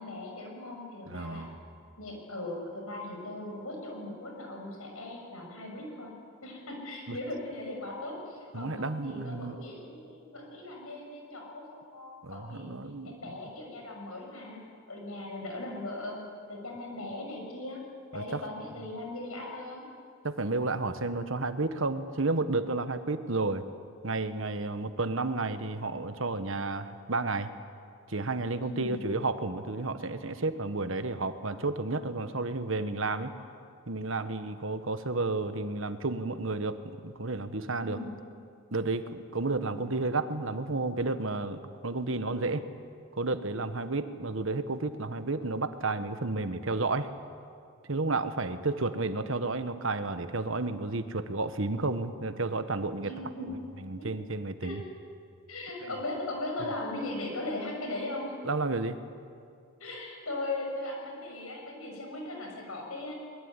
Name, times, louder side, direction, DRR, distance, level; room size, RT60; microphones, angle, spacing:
voice 1, 0.0-1.5 2.0-6.1 6.4-12.7 13.0-14.6 14.9-16.2 16.5-17.8 18.1-19.8 28.6-29.0 37.8-38.2 39.7-39.9 53.0-53.6 54.0-54.1 54.6-54.8 55.5-58.4 59.8-63.1, left 2 dB, 85° left, 1 dB, 6.2 m, -38 dB
voice 2, 1.1-1.6 7.1-7.2 8.5-9.6 12.2-13.3 18.1-18.4 20.2-23.6 24.0-27.5 28.1-33.3 33.9-38.0 38.7-42.7 43.1-47.1 47.9-53.1 53.8-54.8 55.8-55.9 58.4-59.0, right 3 dB, 65° right, 10 dB, 1.3 m, -31 dB
22.5 x 22.0 x 9.8 m, 2.4 s
head